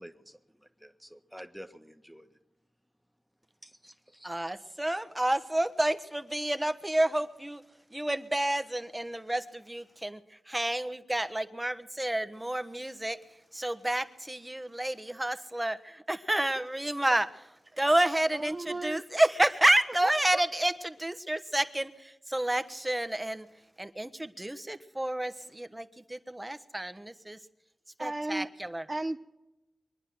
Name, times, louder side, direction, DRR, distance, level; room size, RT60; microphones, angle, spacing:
voice 1, 0.0-2.4 3.6-4.5, equal, ahead, 7 dB, 1.5 m, -50 dB
voice 2, 4.2-7.6 7.9-13.2 13.5-17.3 17.8-23.5 23.8-27.4 28.0-28.8, right 1 dB, 15° right, 11 dB, 1.2 m, -30 dB
voice 3, 18.3-19.0 20.0-20.4 28.0-28.5 28.9-29.2, right 2 dB, 35° right, 8 dB, 0.6 m, -35 dB
23.5 x 9.7 x 6.1 m, 0.98 s
cardioid pair, 45°, 0 cm